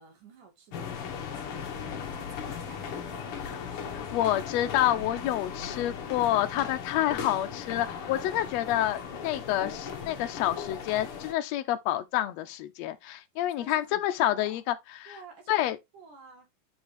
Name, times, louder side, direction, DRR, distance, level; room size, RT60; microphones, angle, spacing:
voice 1, 0.0-1.7 2.1-4.4 13.6-14.6 15.1-16.5, right 4 dB, 75° right, 3.6 m, -51 dB
sound 1, 0.7-11.3, left 7 dB, 60° left, 1.7 m, -37 dB
voice 2, 3.9-15.2 15.5-15.8, left 13 dB, 75° left, 1.6 m, -28 dB
8.0 x 4.4 x 3.2 m
omnidirectional pair, 3.7 m